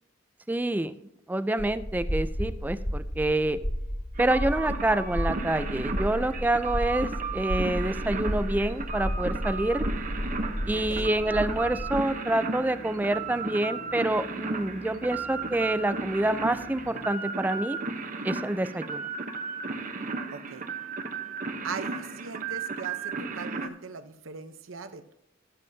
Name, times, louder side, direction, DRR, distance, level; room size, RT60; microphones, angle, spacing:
voice 1, 0.5-0.9 1.3-3.6 4.2-9.9 10.7-17.8 18.2-19.0, right 1 dB, 10° right, 12 dB, 0.4 m, -27 dB
sound 1, 1.6-12.1, equal, 50° left, 2.2 m, -32 dB
sound 2, 4.2-23.7, right 4 dB, 40° right, 0.9 m, -35 dB
sound 3, 9.9-17.1, left 1 dB, 75° left, 1.4 m, -47 dB
voice 2, 10.7-11.1 20.3-20.7 21.6-25.1, right 5 dB, 85° right, 9 dB, 0.8 m, -40 dB
16.0 x 7.5 x 2.7 m, 0.84 s
head